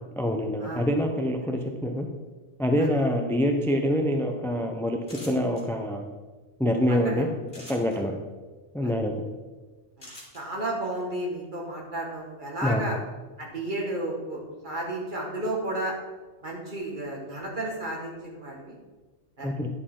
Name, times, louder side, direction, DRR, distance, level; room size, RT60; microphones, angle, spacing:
voice 1, 0.2-2.1 2.6-5.0 5.2-6.0 6.6-7.3 7.7-8.1 8.7-9.2 12.6-12.8 19.4-19.7, equal, 5° left, 3 dB, 0.4 m, -25 dB
sound 1, 5.0-5.6 7.5-8.0 10.0-10.4, left 1 dB, 45° left, 2.4 m, -44 dB
voice 2, 10.3-13.0 13.4-16.0 16.4-18.8 19.4-19.5, right 1 dB, 45° right, -2 dB, 1.9 m, -33 dB
10.5 x 6.5 x 3.8 m, 1.3 s
omnidirectional pair, 1.2 m